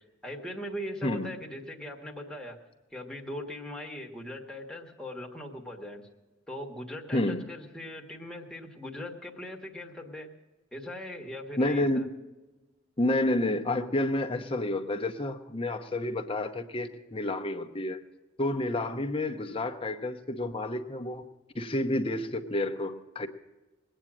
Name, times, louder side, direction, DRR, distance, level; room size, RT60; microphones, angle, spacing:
voice 1, 0.0-2.6 2.9-6.1 6.5-10.3 10.7-12.1, left 1 dB, 5° left, -1 dB, 1.4 m, -40 dB
voice 2, 7.1-7.4 11.6-12.1 13.0-18.0 18.4-21.3 21.5-23.3, left 1 dB, 30° left, 6 dB, 0.9 m, -29 dB
21.0 x 8.9 x 6.1 m, 1.1 s
head